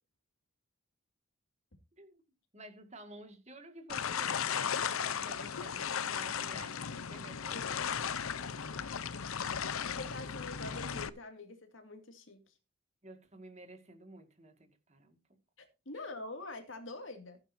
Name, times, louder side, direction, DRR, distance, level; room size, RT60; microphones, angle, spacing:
voice 1, 2.5-7.9 13.0-15.2 15.9-16.1, right 2 dB, 30° right, 2.0 m, -52 dB
sound 1, 3.9-11.1, left 7 dB, 80° left, 0.7 m, -36 dB
voice 2, 9.7-12.5 15.6-17.4, left 2 dB, 65° left, 2.4 m, -45 dB
16.0 x 9.1 x 2.7 m
head